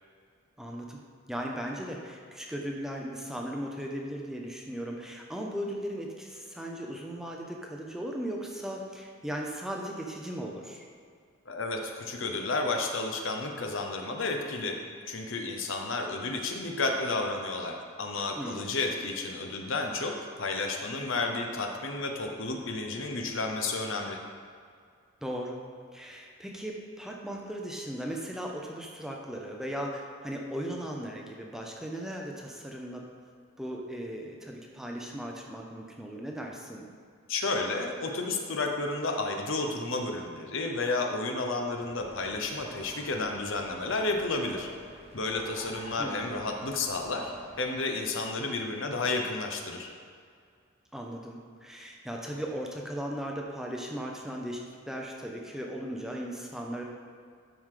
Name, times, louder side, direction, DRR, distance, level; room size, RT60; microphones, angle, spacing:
voice 1, 0.6-1.0 1.3-10.8 18.4-18.8 25.2-25.6 25.9-33.1 33.6-36.9 46.0-46.3 50.9-56.8, equal, ahead, 0 dB, 0.6 m, -37 dB
voice 2, 11.5-14.8 15.1-24.2 37.3-44.7 45.1-47.3 47.6-49.9, left 3 dB, 60° left, 3 dB, 0.9 m, -31 dB
sound 1, 41.8-47.7, right 1 dB, 30° right, 1.0 m, -48 dB
12.0 x 4.9 x 3.8 m, 2.2 s
head